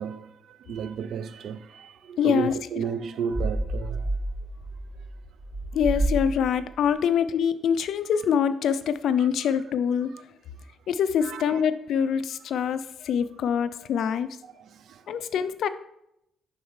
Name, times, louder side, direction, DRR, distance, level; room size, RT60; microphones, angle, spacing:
voice 1, 0.0-4.1 11.2-11.6 14.7-15.0, right 7 dB, 70° right, 0.4 m, -33 dB
voice 2, 2.2-2.6 5.7-10.1 10.9-14.4 15.1-15.7, left 7 dB, 70° left, 0.3 m, -25 dB
sound 1, 3.3-6.7, right 1 dB, 15° right, 1.0 m, -29 dB
5.5 x 5.5 x 3.1 m
cardioid pair, 90°, 0 cm